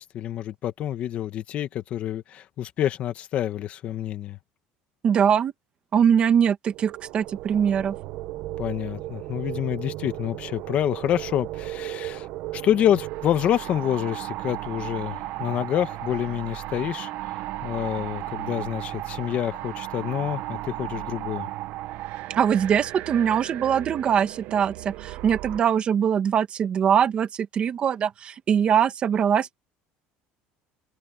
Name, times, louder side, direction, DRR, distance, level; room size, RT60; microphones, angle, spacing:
voice 1, 0.0-4.4 8.6-21.5, left 11 dB, 40° left, 1.9 m, -27 dB
voice 2, 5.0-5.5 5.9-8.0 22.4-29.6, right 8 dB, 30° right, 1.9 m, -22 dB
sound 1, 6.7-25.6, right 16 dB, 60° right, 1.3 m, -35 dB
cardioid pair, 160°, 3 cm